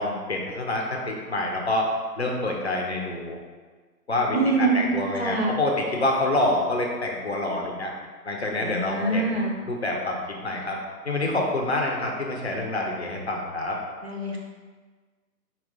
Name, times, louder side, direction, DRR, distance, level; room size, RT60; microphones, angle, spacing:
voice 1, 0.0-3.4 4.1-7.9 8.2-10.8 11.0-13.8, left 2 dB, 40° left, 0 dB, 0.6 m, -27 dB
voice 2, 4.3-4.8 5.2-5.5 8.6-9.5 14.0-14.4, right 3 dB, 40° right, -1 dB, 0.5 m, -25 dB
4.8 x 2.3 x 3.5 m, 1.4 s
figure-of-eight pair, 150°, 49 cm